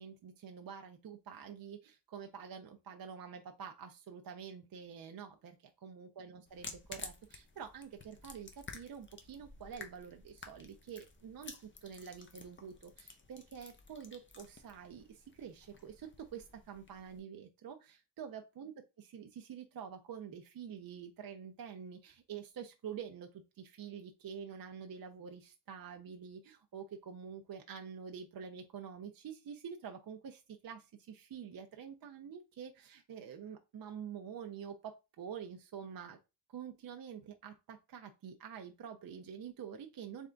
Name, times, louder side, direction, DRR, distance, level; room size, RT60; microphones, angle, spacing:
voice 1, 0.0-18.7 19.1-36.2 36.5-40.3, right 7 dB, 55° right, 4 dB, 0.5 m, -47 dB
sound 1, 6.5-17.2, left 3 dB, 30° left, 0.6 m, -53 dB
3.5 x 3.3 x 3.8 m, 0.26 s
wide cardioid pair, 165°, 42 cm